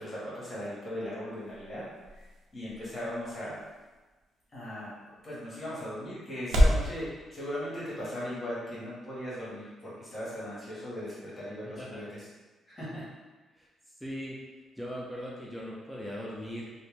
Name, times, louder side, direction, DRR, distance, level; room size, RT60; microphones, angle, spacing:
voice 1, 0.0-1.9 2.5-3.6 4.5-5.0 5.2-12.2 12.7-13.1, equal, 35° left, -8 dB, 1.2 m, -38 dB
sound 1, 0.6-6.9, equal, 75° right, 0.5 m, -32 dB
voice 2, 14.0-14.4 14.8-16.7, equal, ahead, -5 dB, 0.5 m, -39 dB
2.5 x 2.1 x 3.1 m, 1.2 s
cardioid pair, 90°, 0 cm